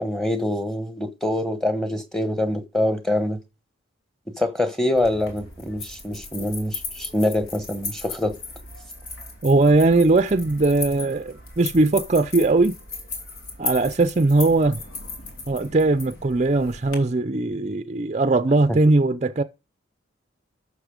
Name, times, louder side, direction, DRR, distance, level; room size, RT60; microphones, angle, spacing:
voice 1, 0.0-3.4 4.4-8.3, left 1 dB, ahead, 1.2 m, -25 dB
sound 1, 4.9-17.0, left 3 dB, 80° left, 3.1 m, -37 dB
voice 2, 9.4-12.8 13.6-14.8 15.5-19.4, right 2 dB, 35° right, 0.5 m, -19 dB
13.0 x 6.7 x 5.1 m
head